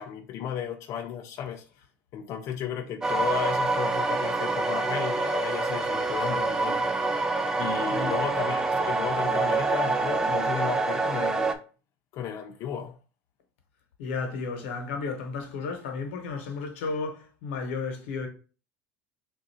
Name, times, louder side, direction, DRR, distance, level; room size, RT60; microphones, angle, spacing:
voice 1, 0.0-1.6 2.1-6.8 7.6-11.6 12.1-12.9, left 8 dB, 50° left, 0.5 m, -34 dB
sound 1, 3.0-11.5, right 3 dB, 10° right, 0.5 m, -26 dB
voice 2, 7.9-8.3 14.0-18.3, left 4 dB, 85° left, 1.1 m, -33 dB
3.5 x 2.6 x 4.2 m
supercardioid pair, 120°, 6 cm